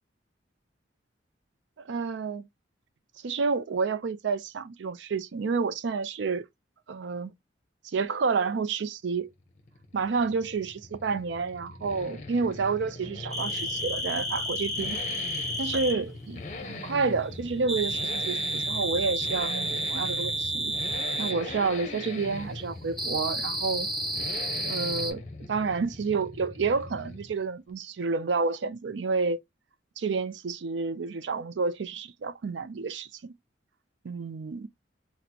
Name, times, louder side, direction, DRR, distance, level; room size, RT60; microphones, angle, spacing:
voice 1, 1.8-2.5 3.2-6.5 6.9-7.3 7.8-9.3 9.9-15.0 15.6-20.7 21.2-23.9 24.7-25.2 25.5-29.4 30.0-33.3 34.0-34.7, right 4 dB, 70° right, 0.4 m, -29 dB
Accelerating revving vroom, 9.3-27.4 27.7-27.8, left 2 dB, 40° left, 0.6 m, -41 dB
sound 1, 13.3-16.0 17.7-21.4 23.0-25.1, equal, ahead, 0.7 m, -31 dB
4.2 x 2.1 x 2.7 m
head